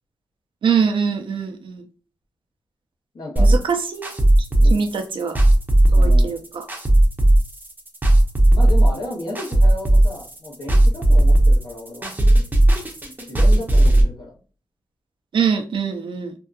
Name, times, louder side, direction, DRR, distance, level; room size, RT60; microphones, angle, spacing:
voice 1, 0.6-1.8 3.4-4.3 4.7-5.4 5.9-6.7 15.3-16.3, right 6 dB, 80° right, 6 dB, 0.5 m, -23 dB
voice 2, 3.1-3.5 4.6-4.8 5.9-6.4 8.5-12.1 13.3-14.3, left 1 dB, 55° left, -1 dB, 0.8 m, -33 dB
sound 1, 3.4-14.0, right 1 dB, 20° right, 0.6 m, -15 dB
2.7 x 2.3 x 2.3 m, 0.36 s
wide cardioid pair, 140°, 8 cm